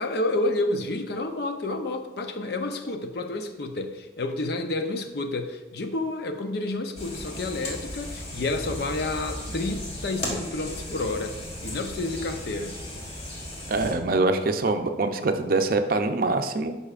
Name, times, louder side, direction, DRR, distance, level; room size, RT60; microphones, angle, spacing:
voice 1, 0.0-12.8, left 2 dB, 55° left, 7 dB, 0.6 m, -30 dB
sound 1, 7.0-13.9, left 1 dB, 35° left, 1.7 m, -36 dB
voice 2, 13.7-16.8, right 3 dB, 50° right, 7 dB, 0.5 m, -24 dB
11.5 x 5.5 x 2.5 m, 1.2 s
head